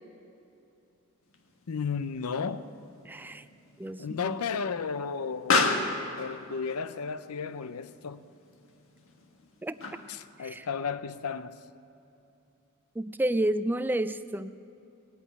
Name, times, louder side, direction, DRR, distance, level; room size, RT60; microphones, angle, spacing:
Explosion, 1.3-10.3, left 3 dB, 65° left, 1.4 m, -34 dB
voice 1, 1.7-2.7 4.0-5.7 6.2-8.2 10.1-11.6, left 5 dB, 80° left, 0.6 m, -33 dB
voice 2, 3.0-3.4 3.8-4.4 9.6-9.8 10.4-10.7 13.0-14.5, right 1 dB, 10° right, 0.3 m, -30 dB
18.0 x 8.3 x 9.5 m
head